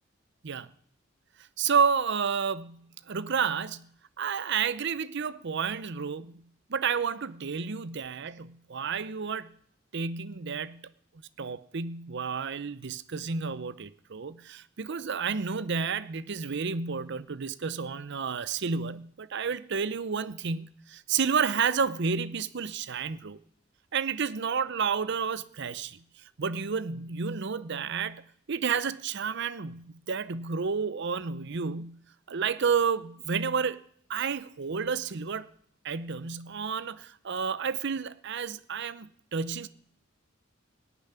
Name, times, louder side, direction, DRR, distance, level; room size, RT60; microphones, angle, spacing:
voice 1, 1.6-3.9 4.2-6.4 6.7-9.5 9.9-10.8 11.4-23.4 23.9-26.0 26.4-28.2 28.5-32.0 32.3-33.8 34.1-35.5 35.8-39.7, right 6 dB, 60° right, 0.7 m, -30 dB
17.5 x 7.1 x 9.6 m
head